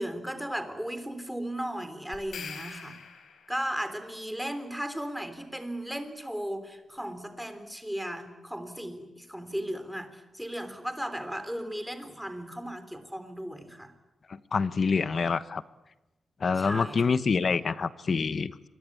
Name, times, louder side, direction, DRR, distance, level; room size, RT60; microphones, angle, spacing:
voice 1, 0.0-3.0 3.5-13.9 15.0-15.2 16.6-17.0, equal, ahead, 9 dB, 3.5 m, -36 dB
sound 1, 2.1-3.7, left 6 dB, 85° left, 4.8 m, -43 dB
voice 2, 14.5-15.6 16.4-18.7, left 5 dB, 45° left, 14 dB, 1.1 m, -26 dB
27.5 x 22.5 x 8.5 m, 1.0 s
wide cardioid pair, 125°, 0 cm